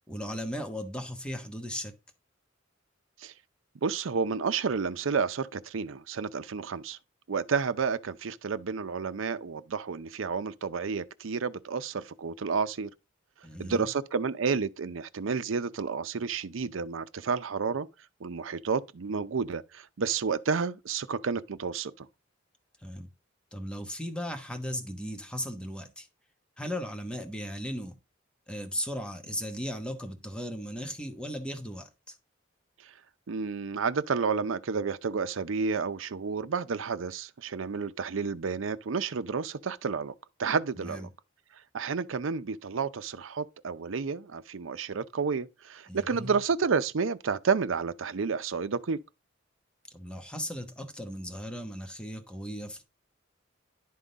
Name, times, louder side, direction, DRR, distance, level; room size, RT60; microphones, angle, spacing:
voice 1, 0.1-1.9 13.4-13.9 22.8-23.1 23.5-26.1 26.6-28.0 28.5-32.1 40.8-41.1 45.9-46.3 49.9-52.8, equal, 5° left, 1.1 m, -37 dB
voice 2, 3.8-7.0 7.3-12.9 13.6-17.9 18.2-22.1 33.3-40.1 40.4-41.0 41.7-49.0, right 5 dB, 85° right, 0.6 m, -30 dB
11.0 x 3.7 x 4.0 m
head